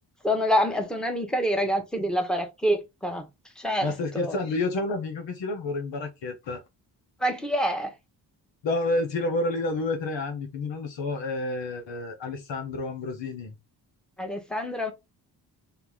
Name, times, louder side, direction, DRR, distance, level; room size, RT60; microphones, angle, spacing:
voice 1, 0.2-3.3 3.6-4.4 7.2-7.9 14.2-14.9, equal, ahead, 1.3 m, -26 dB
voice 2, 3.8-6.6 8.6-13.5, left 2 dB, 75° left, 1.3 m, -29 dB
3.8 x 2.9 x 3.8 m
cardioid pair, 60°, 45 cm